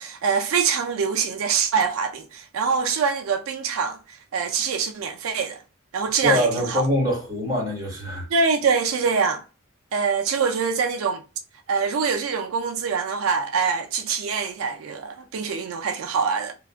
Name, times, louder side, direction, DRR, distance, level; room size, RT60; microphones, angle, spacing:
voice 1, 0.0-5.6 5.9-6.8 8.3-9.4 9.9-11.2 11.7-16.5, right 5 dB, 85° right, 0.4 m, -24 dB
voice 2, 6.2-8.3, left 1 dB, 20° right, 1.3 m, -24 dB
2.4 x 2.3 x 3.3 m
head